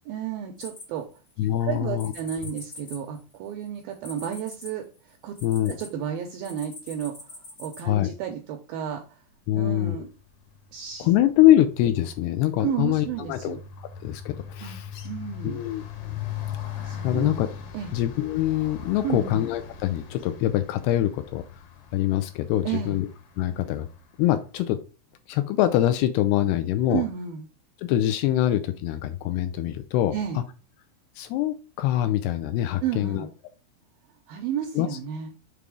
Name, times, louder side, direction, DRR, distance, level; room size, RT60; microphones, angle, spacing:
voice 1, 0.1-1.1 1.6-5.4 5.7-7.1 7.6-9.2 9.5-10.1 10.7-11.1 12.6-13.6 14.6-14.8 15.0-15.6 16.8-17.3 17.7-17.9 19.0-19.4 22.7-23.0 26.9-27.4 30.1-30.4 32.8-33.3 34.3-35.3, right 9 dB, 85° right, 5 dB, 2.1 m, -32 dB
sound 1, 0.6-1.4 2.0-5.9 6.4-7.8, left 2 dB, 40° left, 1.1 m, -43 dB
voice 2, 1.4-2.1 5.4-5.8 7.8-8.1 9.5-10.0 11.0-14.9 15.4-16.2 17.0-17.5 17.9-21.4 21.9-23.1 23.4-23.9 24.2-24.8 25.3-27.0 27.8-30.4 31.2-33.3 34.8-34.9, left 13 dB, 80° left, 9 dB, 2.4 m, -24 dB
sound 2, 10.3-10.6 10.9-24.0, left 8 dB, 65° left, 2.7 m, -39 dB
6.9 x 3.7 x 4.7 m, 0.35 s
omnidirectional pair, 5.0 m